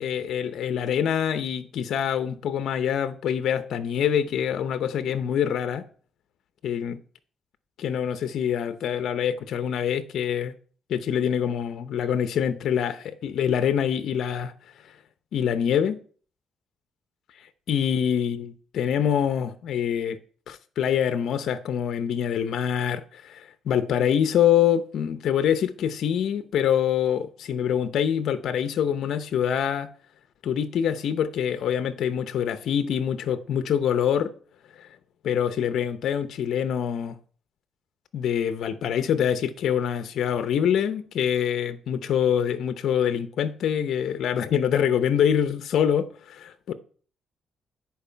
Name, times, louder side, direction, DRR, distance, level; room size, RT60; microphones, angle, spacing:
voice 1, 0.0-5.8 6.6-7.0 7.8-10.5 10.9-14.5 14.9-15.0 15.3-16.0 17.3-20.2 20.5-29.9 30.4-34.3 34.8-34.9 35.2-37.2 38.1-46.7, left 9 dB, 70° left, 0.7 m, -25 dB
10.5 x 4.6 x 5.7 m
cardioid pair, 90°, 0 cm